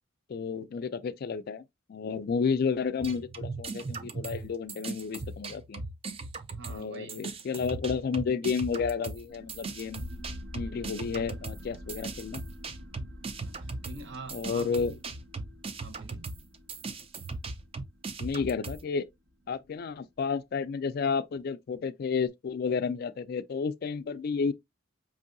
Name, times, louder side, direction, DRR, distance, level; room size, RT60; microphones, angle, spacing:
voice 1, 0.3-1.6 1.9-5.8 6.7-10.1 10.5-12.4 14.3-14.9 18.2-19.1 19.5-24.5, left 5 dB, 50° left, 0.3 m, -31 dB
sound 1, 3.0-6.8 7.1-18.8, right 3 dB, 30° right, 0.4 m, -38 dB
voice 2, 6.5-7.3 13.2-15.0 15.8-16.4, right 3 dB, 60° right, 0.7 m, -46 dB
sound 2, 9.3-20.4, equal, 85° right, 1.3 m, -48 dB
5.2 x 2.7 x 2.5 m
head